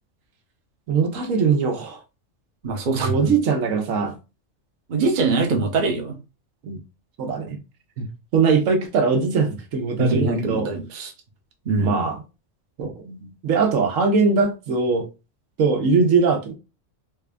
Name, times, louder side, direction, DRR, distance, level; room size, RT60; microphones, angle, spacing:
voice 1, 0.9-2.0 3.0-4.1 5.5-5.6 6.6-6.8 7.2-7.6 8.0-8.1 8.3-10.7 11.8-12.2 12.8-15.1 15.6-16.6, right 5 dB, 85° right, 1.2 m, -21 dB
voice 2, 2.6-3.1 4.9-6.2 10.0-11.1 11.7-12.0, right 3 dB, 45° right, 0.8 m, -22 dB
3.5 x 2.4 x 3.3 m
omnidirectional pair, 1.3 m